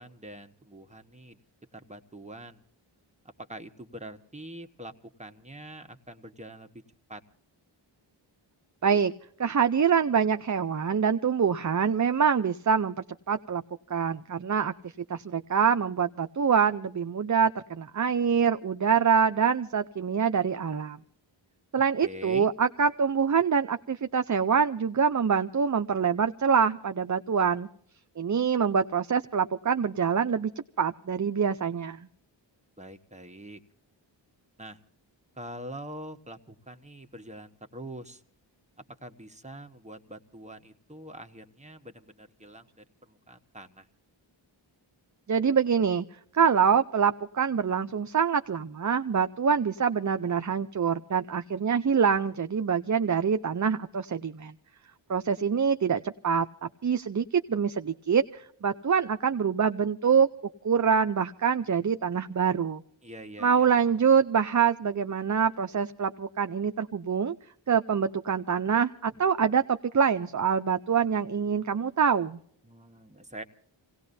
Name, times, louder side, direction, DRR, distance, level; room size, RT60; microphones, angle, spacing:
voice 1, 0.0-1.4 1.7-2.6 3.4-4.9 5.2-6.8 7.1-7.2 22.0-22.5 32.8-33.6 34.6-34.8 35.4-38.2 39.0-43.9 63.0-63.7 72.6-73.4, right 1 dB, 15° right, 6 dB, 1.2 m, -44 dB
voice 2, 8.8-9.1 9.4-13.6 13.9-14.7 15.1-21.0 21.7-27.7 28.2-30.5 30.8-32.1 45.3-46.1 46.3-54.5 55.1-60.3 60.6-62.8 63.4-67.3 67.7-72.4, right 6 dB, 40° right, 9 dB, 0.6 m, -25 dB
28.0 x 18.0 x 2.7 m, 0.66 s
wide cardioid pair, 60°, 47 cm